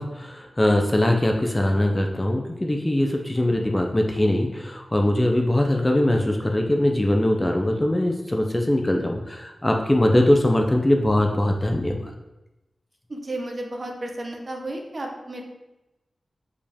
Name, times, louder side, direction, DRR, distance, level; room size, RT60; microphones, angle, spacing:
voice 1, 0.0-12.0, left 1 dB, 15° left, 3 dB, 0.6 m, -21 dB
voice 2, 13.1-15.4, right 1 dB, 35° right, 2 dB, 1.0 m, -33 dB
6.9 x 5.0 x 3.5 m, 0.98 s
wide cardioid pair, 125°, 0 cm